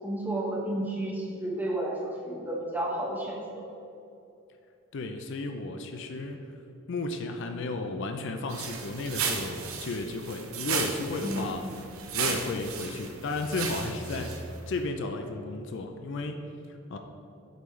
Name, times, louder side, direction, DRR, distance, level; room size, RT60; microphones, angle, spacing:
voice 1, 0.0-3.6 11.2-11.5, right 1 dB, 10° right, -4 dB, 1.1 m, -32 dB
voice 2, 4.9-6.5 6.9-11.6 12.1-16.4 16.7-17.0, left 3 dB, 60° left, 5 dB, 0.4 m, -34 dB
sound 1, 8.5-14.7, right 5 dB, 85° right, 0.7 m, -34 dB
8.0 x 5.4 x 3.2 m, 2.7 s
head